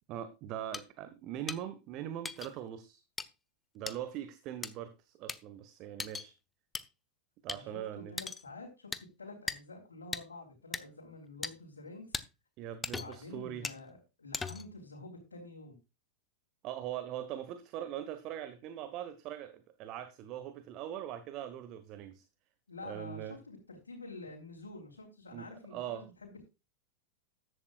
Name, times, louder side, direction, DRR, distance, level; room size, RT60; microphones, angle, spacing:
voice 1, 0.1-3.0 3.7-6.3 7.4-8.1 12.6-13.7 16.6-22.3 22.8-23.4 25.3-26.1, right 11 dB, 40° right, 12 dB, 1.3 m, -41 dB
sound 1, 0.7-0.8 1.5-1.6 2.2-2.5 3.2-3.3 3.9-4.0 4.6-4.7 5.3-5.4 6.0-6.3 6.7-6.8 7.5-7.6 8.2-8.4 8.9-9.0 9.5-9.6 10.1-10.2 10.7-10.8 11.4-11.5 12.1-12.2 12.8-13.2 13.6-13.8 14.3-14.7, left 4 dB, 15° left, 0.9 m, -38 dB
voice 2, 7.5-12.2 12.9-15.8 22.7-26.4, left 2 dB, 75° left, -2 dB, 3.7 m, -48 dB
14.5 x 11.5 x 2.4 m, 0.28 s
figure-of-eight pair, 90°, 0 cm